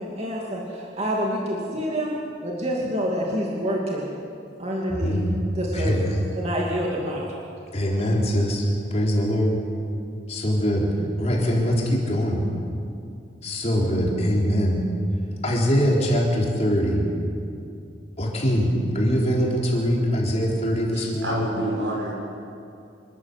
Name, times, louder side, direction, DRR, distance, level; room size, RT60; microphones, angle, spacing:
voice 1, 0.0-2.2 2.4-4.1 4.6-5.1 5.6-5.9 6.3-7.2, equal, 35° right, -2 dB, 2.5 m, -27 dB
voice 2, 5.0-5.3 5.7-6.3 7.7-9.6 10.3-10.9 11.2-12.4 13.4-14.8 15.4-17.0 18.2-21.4, equal, 35° left, -2 dB, 3.7 m, -22 dB
voice 3, 20.9-22.1, right 1 dB, 85° right, -2 dB, 6.8 m, -28 dB
26.5 x 13.5 x 8.2 m, 2.5 s
head